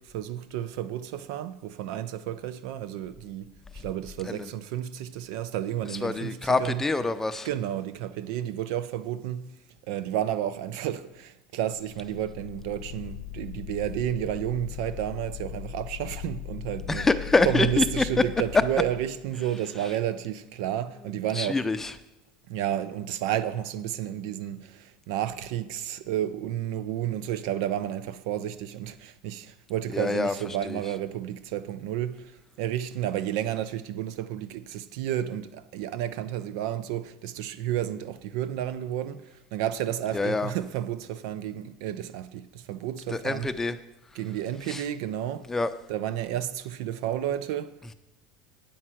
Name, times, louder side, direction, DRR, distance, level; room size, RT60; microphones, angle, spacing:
voice 1, 0.1-6.8 7.4-9.4 9.9-17.1 17.5-21.6 22.5-32.3 32.6-39.2 39.5-43.5 44.2-45.5 45.9-47.9, right 11 dB, 75° right, 0.6 m, -31 dB
voice 2, 5.9-7.5 16.9-18.2 21.3-21.9 29.9-30.3 30.6-30.8 40.1-40.5 43.1-43.8 44.7-44.8 45.5-45.7, left 3 dB, 15° left, 0.6 m, -26 dB
sound 1, 11.8-19.4, left 16 dB, 80° left, 0.6 m, -39 dB
8.7 x 5.5 x 7.6 m
supercardioid pair, 110°, 3 cm